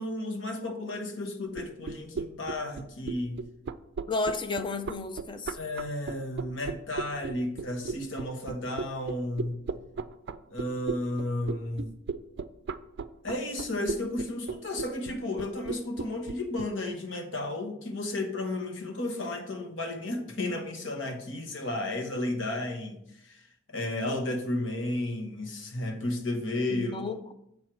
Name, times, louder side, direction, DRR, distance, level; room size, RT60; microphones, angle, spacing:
voice 1, 0.0-3.4 5.5-9.6 10.5-11.9 13.2-23.0 23.2-23.4 23.7-27.0, left 1 dB, 70° left, 4 dB, 1.3 m, -33 dB
sound 1, 1.5-16.7, right 4 dB, 60° right, 0.4 m, -35 dB
voice 2, 4.1-5.6 26.7-27.3, left 3 dB, 25° left, 9 dB, 0.5 m, -32 dB
7.5 x 4.6 x 6.1 m, 0.78 s
head